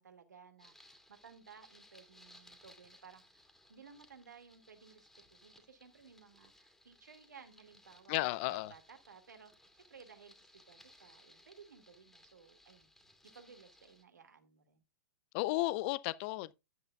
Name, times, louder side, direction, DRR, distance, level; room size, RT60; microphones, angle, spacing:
voice 1, 0.0-12.9 13.3-14.8, right 6 dB, 75° right, 2.1 m, -58 dB
sound 1, 0.6-14.0, left 1 dB, 5° left, 2.3 m, -63 dB
voice 2, 8.1-8.7 15.3-16.5, left 19 dB, 40° left, 0.5 m, -33 dB
11.0 x 9.3 x 2.3 m
figure-of-eight pair, 110°, 10 cm